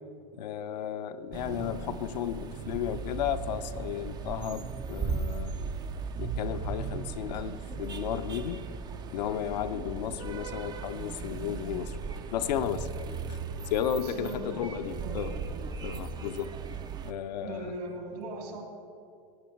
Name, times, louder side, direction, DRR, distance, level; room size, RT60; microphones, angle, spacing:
voice 1, 0.3-5.6 6.2-8.6 9.1-12.0 12.3-12.9 13.3-13.4 13.7-15.3 15.8-16.5 17.0-17.7, left 9 dB, 80° left, 9 dB, 0.7 m, -33 dB
sound 1, 1.3-17.1, right 5 dB, 20° right, 0.4 m, -37 dB
voice 2, 13.9-14.7 15.0-15.2 17.4-18.6, right 2 dB, 70° right, 2 dB, 3.0 m, -39 dB
16.5 x 9.4 x 4.5 m, 2.6 s
supercardioid pair, 135°, 21 cm